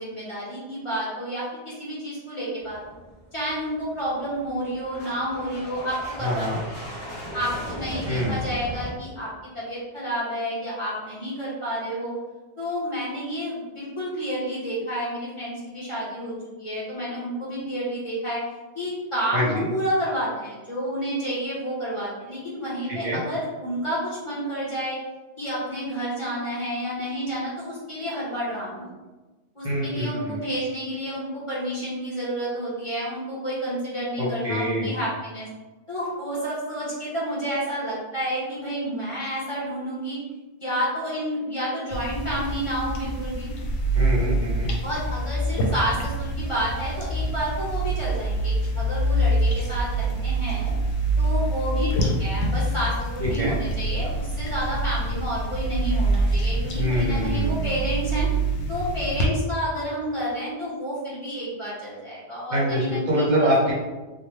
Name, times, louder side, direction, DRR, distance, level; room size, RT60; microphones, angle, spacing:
voice 1, 0.0-2.8 3.3-6.7 7.3-9.3 9.5-12.2 12.6-18.4 18.7-25.0 25.4-28.9 29.5-35.5 35.9-40.2 40.6-43.5 44.8-50.7 51.2-58.3 58.7-63.7, equal, 30° left, -8 dB, 0.8 m, -30 dB
sound 1, 2.6-8.9, equal, 60° left, 1.1 m, -37 dB
voice 2, 6.2-6.6 8.1-8.4 19.3-19.6 22.9-23.2 29.6-30.4 34.2-34.9 43.9-44.7 53.2-53.5 56.8-57.7 62.5-63.7, equal, 50° right, -6 dB, 0.7 m, -25 dB
sound 2, 41.9-59.3, right 1 dB, 80° left, 0.9 m, -25 dB
3.1 x 2.1 x 3.1 m, 1.2 s
omnidirectional pair, 1.1 m